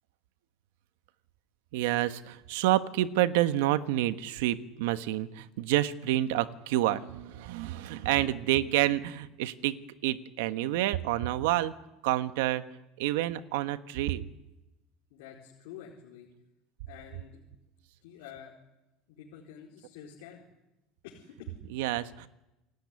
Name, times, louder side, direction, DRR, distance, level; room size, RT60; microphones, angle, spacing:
voice 1, 1.7-9.8 10.0-11.7 12.0-12.6 13.0-14.2 21.7-22.3, right 14 dB, 90° right, 11 dB, 1.3 m, -28 dB
voice 2, 15.1-16.3 16.9-17.4 18.0-18.5 19.1-20.4 21.0-21.6, left 9 dB, 85° left, -2 dB, 4.6 m, -48 dB
28.5 x 18.0 x 9.8 m, 0.98 s
cardioid pair, 165°, 0 cm